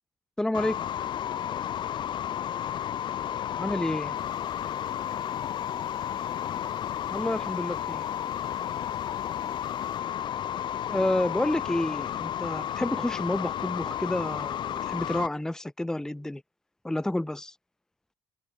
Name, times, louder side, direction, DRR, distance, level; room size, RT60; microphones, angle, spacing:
voice 1, 0.4-0.8 3.6-4.2 7.1-8.1 10.9-16.4 16.8-17.5, left 1 dB, 5° left, 0.6 m, -29 dB
sound 1, 0.5-15.3, left 10 dB, 50° left, 0.6 m, -32 dB
voice 2, 2.2-3.7 5.0-6.4, right 7 dB, 45° right, 6.9 m, -65 dB
sound 2, 4.1-10.0, left 5 dB, 35° left, 3.3 m, -60 dB
supercardioid pair, 70°, 10 cm